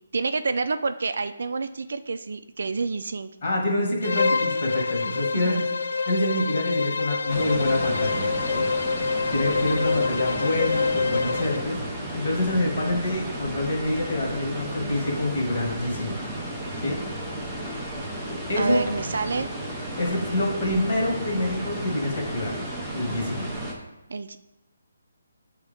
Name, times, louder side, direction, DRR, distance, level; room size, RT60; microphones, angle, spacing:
voice 1, 0.1-3.3 5.3-5.6 18.6-19.5 24.1-24.4, right 4 dB, 60° right, 11 dB, 0.3 m, -28 dB
voice 2, 3.4-8.6 9.3-16.2 16.8-17.0 18.5-18.8 20.0-22.6 22.9-23.5, left 1 dB, 40° left, -2 dB, 1.7 m, -27 dB
Bowed string instrument, 4.0-11.7, left 4 dB, 70° left, 0.3 m, -26 dB
sound 1, 7.3-23.7, right 1 dB, ahead, 0.6 m, -33 dB
8.1 x 3.5 x 3.5 m, 0.97 s
hypercardioid pair, 175°, 0 cm